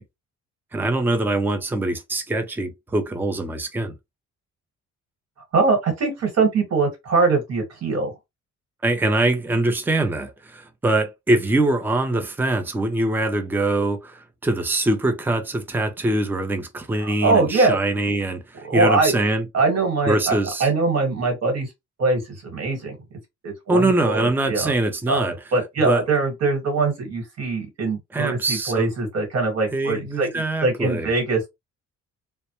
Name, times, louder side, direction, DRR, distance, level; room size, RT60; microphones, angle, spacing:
voice 1, 0.7-3.9 8.8-18.4 18.7-19.5 20.1-20.7 23.7-25.3 25.8-26.0 28.1-28.9 29.7-31.1, right 2 dB, 5° right, 0.5 m, -23 dB
voice 2, 5.5-8.1 17.0-17.8 18.1-18.2 18.6-19.2 19.5-21.7 22.0-23.0 23.4-24.7 25.1-30.3 30.6-31.5, right 3 dB, 55° right, 1.4 m, -22 dB
2.1 x 2.1 x 2.9 m
cardioid pair, 90°, 30 cm